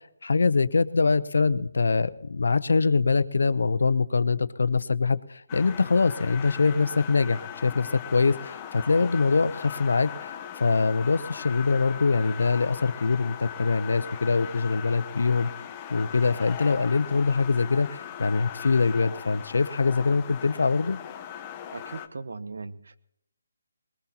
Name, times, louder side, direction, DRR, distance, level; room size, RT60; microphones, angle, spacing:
voice 1, 0.0-15.5 15.9-21.0, left 4 dB, 70° left, 15 dB, 0.8 m, -24 dB
sound 1, 5.5-22.1, left 9 dB, 20° left, 0.9 m, -39 dB
voice 2, 21.7-23.0, right 4 dB, 70° right, 13 dB, 1.0 m, -38 dB
21.5 x 19.5 x 2.9 m, 0.75 s
hypercardioid pair, 160°, 0 cm